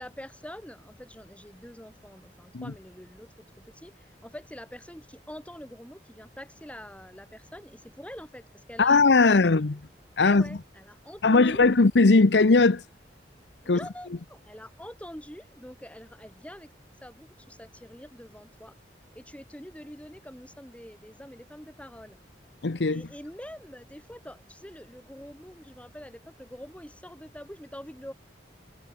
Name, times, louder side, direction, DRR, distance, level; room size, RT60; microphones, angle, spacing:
voice 1, 0.0-3.3 3.6-9.8 10.2-11.6 13.6-16.7 17.0-18.7 19.2-22.2 22.9-28.1, equal, 10° left, 7.2 m, -45 dB
voice 2, 8.8-9.7 10.2-10.5 11.2-12.8 13.7-13.8 22.6-23.0, left 3 dB, 80° left, 0.8 m, -19 dB
head